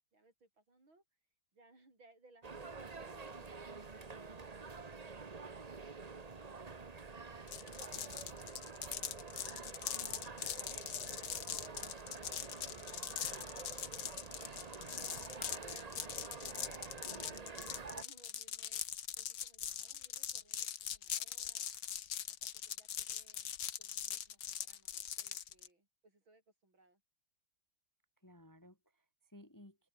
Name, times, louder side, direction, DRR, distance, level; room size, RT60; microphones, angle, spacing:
voice 1, 0.1-1.0 1.5-5.1 16.5-18.8 19.2-21.7 22.3-27.0, right 2 dB, 75° right, 8.4 m, -68 dB
sound 1, 2.4-18.0, right 4 dB, 25° right, 0.9 m, -48 dB
sound 2, 7.5-25.7, left 9 dB, 60° left, 1.8 m, -42 dB
voice 2, 17.1-17.5 28.2-29.9, left 1 dB, 10° left, 1.6 m, -59 dB
open air
omnidirectional pair, 2.2 m